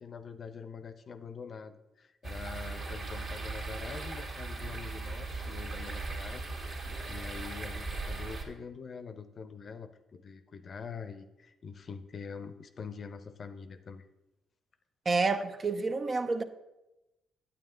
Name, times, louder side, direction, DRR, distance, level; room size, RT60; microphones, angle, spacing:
voice 1, 0.0-14.1, left 5 dB, 45° left, 0.7 m, -45 dB
sound 1, 2.2-8.4, right 3 dB, 55° right, 1.9 m, -38 dB
voice 2, 15.1-16.4, right 3 dB, 35° right, 0.7 m, -29 dB
9.5 x 8.7 x 3.8 m
cardioid pair, 90°, 0 cm